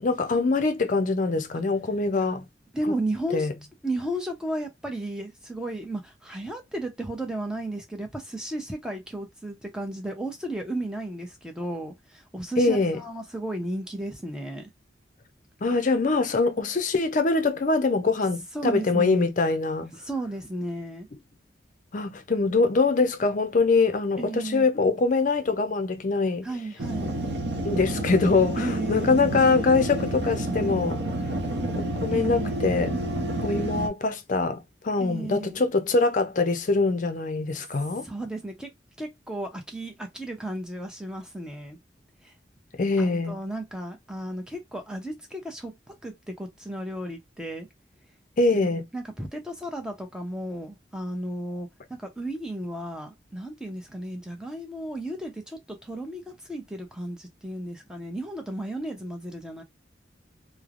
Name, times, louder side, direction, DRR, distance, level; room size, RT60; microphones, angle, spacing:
voice 1, 0.0-2.5 2.9-3.0 3.3-3.5 12.6-13.0 15.6-19.9 21.9-26.5 27.6-31.0 31.8-32.9 33.4-38.1 42.8-43.4 48.4-48.9, left 3 dB, 45° left, 0.5 m, -23 dB
voice 2, 2.7-3.5 3.8-14.7 18.5-19.3 19.9-21.1 24.2-24.7 26.4-27.1 28.6-29.2 32.1-32.6 35.0-35.6 38.0-38.7 39.0-41.8 42.2-42.3 43.0-47.7 48.5-59.6, right 1 dB, 5° right, 0.6 m, -34 dB
sound 1, 26.8-33.9, right 1 dB, 65° right, 0.6 m, -29 dB
3.1 x 2.0 x 2.4 m
head